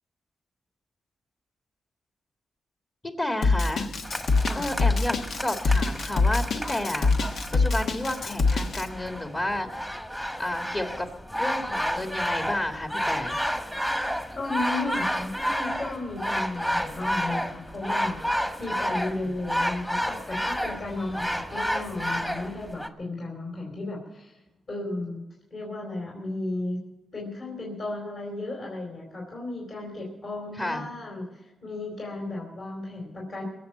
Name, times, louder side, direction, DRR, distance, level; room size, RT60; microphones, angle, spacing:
voice 1, 3.0-3.9 4.5-10.0 10.4-11.1 11.3-13.3 20.9-21.2 30.6-30.8, left 1 dB, 25° left, 5 dB, 1.7 m, -31 dB
Drum kit, 3.4-8.8, left 3 dB, 70° left, 1.2 m, -24 dB
sound 1, 4.0-22.9, equal, 5° left, 1.4 m, -31 dB
voice 2, 14.3-18.2 18.6-24.4 24.7-25.2 25.5-26.8 27.1-33.4, left 2 dB, 50° left, -2 dB, 4.4 m, -34 dB
21.5 x 7.6 x 7.9 m, 1.0 s
cardioid pair, 80°, 0 cm